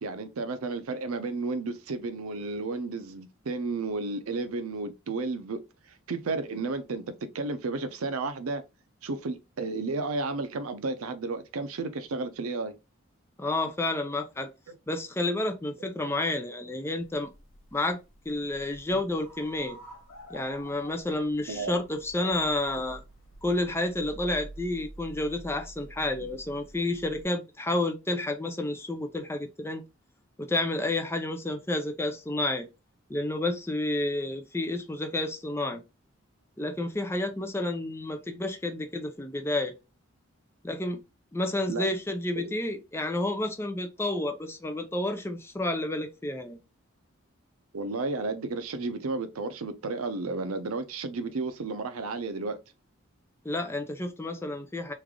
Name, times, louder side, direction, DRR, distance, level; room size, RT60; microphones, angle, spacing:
voice 1, 0.0-5.6 6.1-8.6 9.0-12.7 14.7-14.8 21.5-21.8 41.7-41.9 42.4-42.6 47.7-52.6, right 3 dB, 90° right, 0.6 m, -32 dB
voice 2, 13.4-14.5 14.9-17.3 17.7-18.0 18.3-19.8 20.3-23.0 23.4-29.8 30.4-32.7 33.1-35.8 36.6-39.7 40.6-41.0 41.3-46.6 53.4-54.9, left 2 dB, 10° left, 0.4 m, -30 dB
sound 1, 17.0-27.2, right 1 dB, 65° left, 1.4 m, -48 dB
3.3 x 2.4 x 3.6 m
head